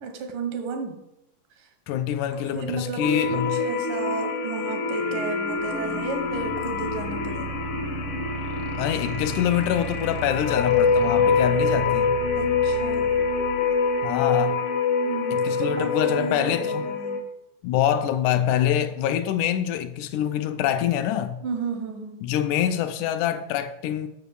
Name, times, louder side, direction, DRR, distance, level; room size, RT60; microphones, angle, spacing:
voice 1, 0.0-1.0 1.6-1.7 2.3-3.1 3.3-7.5 12.4-13.2 15.1-17.2 21.4-22.2, right 4 dB, 85° right, 2.9 m, -33 dB
voice 2, 1.9-3.6 8.8-12.2 14.0-14.6 15.3-16.9 17.6-21.4 22.2-24.1, left 10 dB, 80° left, 1.9 m, -25 dB
sound 1, 3.0-17.2, left 4 dB, 60° left, 1.4 m, -25 dB
sound 2, 5.6-14.4, right 4 dB, 65° right, 1.0 m, -36 dB
6.9 x 6.0 x 6.9 m
omnidirectional pair, 3.7 m